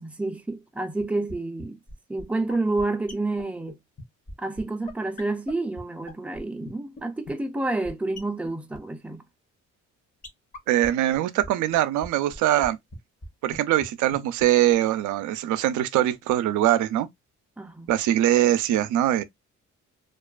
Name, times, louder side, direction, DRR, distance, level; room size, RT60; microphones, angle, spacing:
voice 1, 0.0-1.8 2.1-3.8 4.4-9.2 17.6-17.9, right 2 dB, 5° right, 0.4 m, -29 dB
sound 1, 1.0-1.1 1.3-1.4 1.6-1.7 1.9-2.0 2.2-2.3 2.5-2.6 2.8-2.9 3.1-3.2 3.4-3.5 3.7-3.8 4.0-4.1 4.3-4.4 4.6-4.7 4.9-5.0 5.2-5.3 5.5-5.6 5.8-5.9 6.1-6.4 6.7-6.8 7.0-7.1 7.3-7.4 7.6-7.7 7.8-7.9 8.2-8.3 8.4-8.5 8.7-8.8 10.2-10.3 10.5-10.6 10.8-10.9 11.1-11.2 11.4-11.5 11.7-11.8 12.0-12.1 12.3-12.7 12.9-13.0 13.2-13.3 13.5-13.6 13.8-13.9 14.1-14.2 14.4-14.5 14.7-14.8, left 2 dB, 25° left, 0.8 m, -40 dB
voice 2, 10.7-12.8 13.4-17.1 17.9-19.2, right 13 dB, 80° right, 0.4 m, -22 dB
2.4 x 2.3 x 2.2 m
cardioid pair, 90°, 30 cm